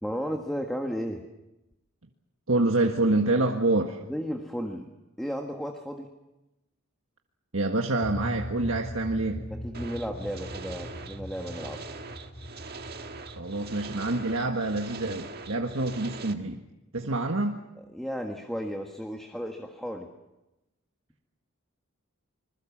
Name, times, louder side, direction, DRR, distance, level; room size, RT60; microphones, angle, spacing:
voice 1, 0.0-1.2 4.1-4.9 5.2-6.1 9.5-11.8 17.9-20.1, equal, ahead, 3 dB, 1.6 m, -34 dB
voice 2, 2.5-4.0 7.5-9.5 13.3-16.6 16.9-17.6, right 2 dB, 65° right, 2 dB, 1.6 m, -26 dB
sound 1, 8.0-16.5, equal, 45° left, 3.9 m, -40 dB
sound 2, 9.7-16.3, right 4 dB, 45° right, 1.7 m, -43 dB
26.5 x 21.5 x 7.4 m, 0.99 s
head